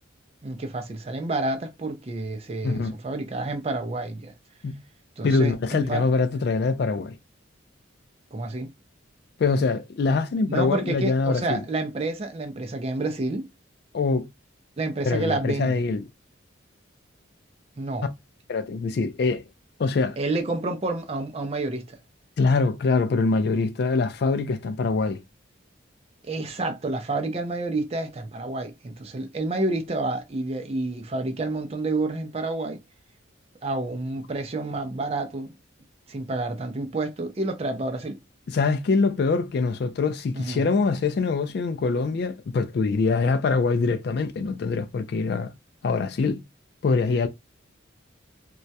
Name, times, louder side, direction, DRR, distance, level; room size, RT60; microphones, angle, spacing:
voice 1, 0.4-4.3 5.2-6.1 8.3-8.7 10.5-13.5 14.8-15.8 17.8-18.1 20.2-22.0 26.2-32.8 33.6-35.5 36.1-38.2 40.4-40.6, right 2 dB, 30° right, 0.4 m, -29 dB
voice 2, 2.6-3.0 4.6-4.8 5.2-7.2 9.4-11.6 13.9-14.3 15.1-16.0 18.5-19.4 19.8-20.2 22.4-25.2 38.5-45.5 45.8-46.4 46.8-47.3, left 4 dB, 55° left, 0.3 m, -24 dB
2.2 x 2.1 x 2.6 m
head